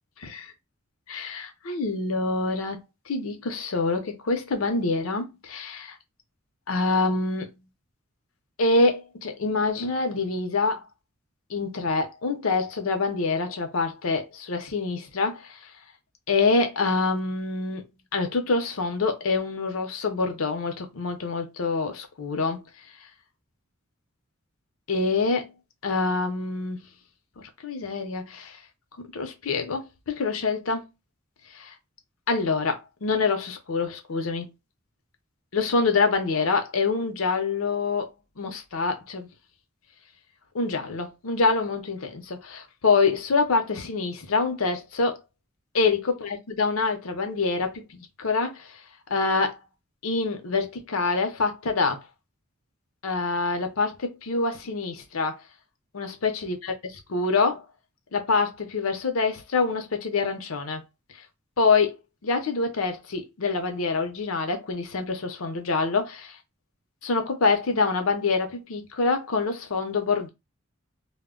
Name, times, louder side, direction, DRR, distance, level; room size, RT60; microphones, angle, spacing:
voice 1, 0.2-0.5 1.1-2.8 3.1-6.0 6.7-7.5 8.6-10.8 11.5-15.6 16.3-17.8 18.1-22.6 24.9-25.5 25.8-26.8 27.4-28.6 29.1-30.8 31.5-31.7 32.3-34.5 35.5-39.3 40.5-45.2 45.7-48.7 49.1-49.6 50.0-52.0 53.0-55.4 55.9-56.7 57.1-57.6 58.1-60.8 61.6-62.0 62.2-66.3 67.0-70.3, left 4 dB, 85° left, 0.7 m, -26 dB
2.1 x 2.1 x 3.6 m
head